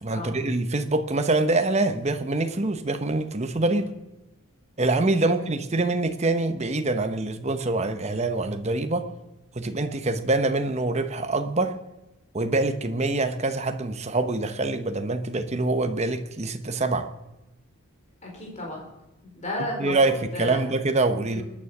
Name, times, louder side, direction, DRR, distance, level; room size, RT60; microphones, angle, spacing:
voice 1, 0.0-3.9 4.8-9.1 9.5-11.8 12.3-17.1 19.8-21.4, right 2 dB, 30° right, 8 dB, 0.9 m, -25 dB
voice 2, 18.2-18.8 19.2-20.6 21.3-21.4, left 1 dB, 30° left, -1 dB, 4.1 m, -33 dB
21.0 x 9.8 x 6.1 m, 0.98 s
head